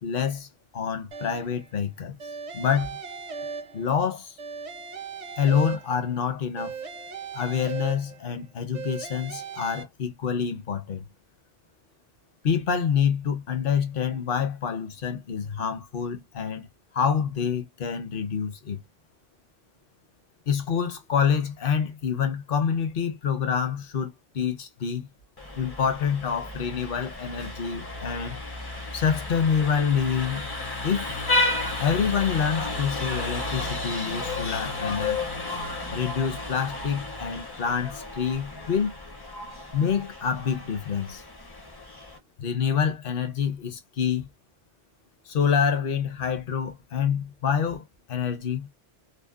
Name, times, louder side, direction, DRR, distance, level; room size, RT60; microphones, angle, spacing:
voice 1, 0.0-0.5 0.7-2.2 2.5-3.0 3.7-4.4 5.4-6.7 7.3-11.0 12.4-16.7 16.9-18.8 20.5-25.1 25.6-28.4 28.9-30.5 30.8-31.2 31.8-35.2 35.9-38.9 39.7-41.2 42.4-44.3 45.3-47.8 48.1-48.7, left 7 dB, 60° left, 0.8 m, -27 dB
sound 1, 1.1-1.7 2.2-4.1 4.4-6.2 6.6-8.4 8.7-9.8, right 6 dB, 50° right, 0.6 m, -38 dB
Vehicle horn car horn honking, 25.4-42.2, left 2 dB, 30° left, 0.5 m, -32 dB
2.7 x 2.0 x 2.3 m
omnidirectional pair, 1.1 m